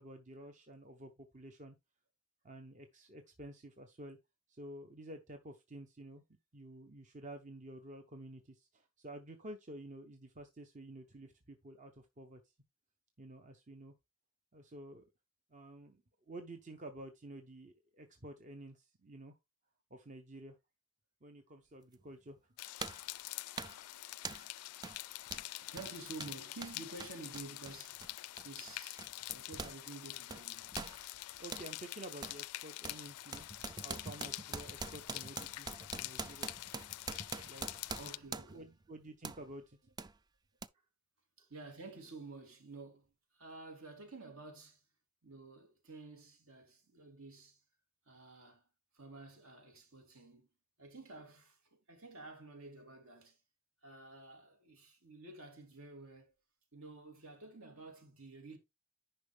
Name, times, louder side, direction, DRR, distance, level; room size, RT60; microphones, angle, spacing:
voice 1, 0.0-1.7 2.4-4.2 4.5-6.2 6.5-12.4 13.2-13.9 14.5-15.1 15.5-19.3 19.9-20.6 21.2-22.6 31.4-33.5 33.8-36.5 37.5-37.7 38.4-39.9, right 1 dB, 35° right, 0.8 m, -51 dB
sound 1, 21.9-22.1 22.8-23.1 23.6-23.8 24.2-24.5 24.8-25.0 25.3-29.8 30.0-31.7 32.2-32.4 32.8-38.7 39.2-39.4 40.0-40.1 40.6-40.7, right 4 dB, 20° right, 0.3 m, -45 dB
sound 2, 22.6-38.2, left 17 dB, 85° left, 0.4 m, -46 dB
voice 2, 25.6-28.1 28.4-30.7 38.0-38.7 41.4-44.8 45.2-47.6 48.1-48.7 48.9-50.5 50.8-51.6 51.9-53.4 53.8-56.3 56.7-58.6, right 3 dB, 65° right, 2.8 m, -51 dB
10.0 x 5.4 x 3.3 m
head